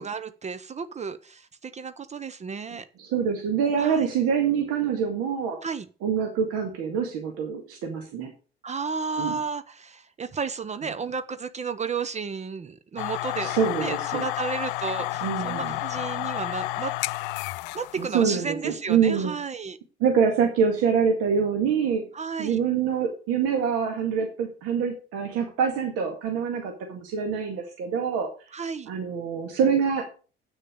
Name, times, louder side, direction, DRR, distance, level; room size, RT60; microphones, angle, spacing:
voice 1, 0.0-2.9 3.8-4.0 5.6-5.9 8.6-13.5 13.8-16.9 17.7-19.8 22.1-22.6 28.5-28.9, right 5 dB, 20° right, 12 dB, 0.8 m, -33 dB
voice 2, 3.0-5.6 6.0-8.3 9.2-9.4 13.4-14.2 15.2-15.7 18.0-19.4 20.0-22.0 22.4-28.3 28.9-30.1, right 6 dB, 50° right, 3 dB, 2.0 m, -25 dB
sound 1, 13.0-18.1, left 18 dB, 60° left, 0.4 m, -31 dB
8.9 x 6.5 x 6.5 m, 0.36 s
figure-of-eight pair, 60°, 30 cm